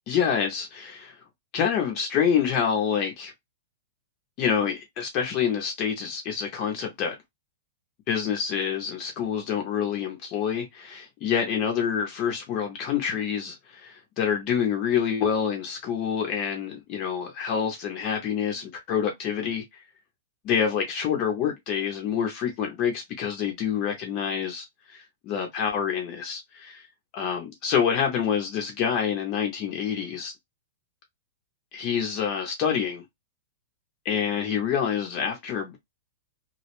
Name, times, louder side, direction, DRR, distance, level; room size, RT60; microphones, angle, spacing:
voice 1, 0.1-1.2 1.5-3.3 4.4-7.2 8.1-19.6 20.4-26.9 27.1-30.3 31.7-33.0 34.0-35.8, left 7 dB, 25° left, 0.4 m, -27 dB
2.3 x 2.0 x 2.9 m
supercardioid pair, 180°, 0 cm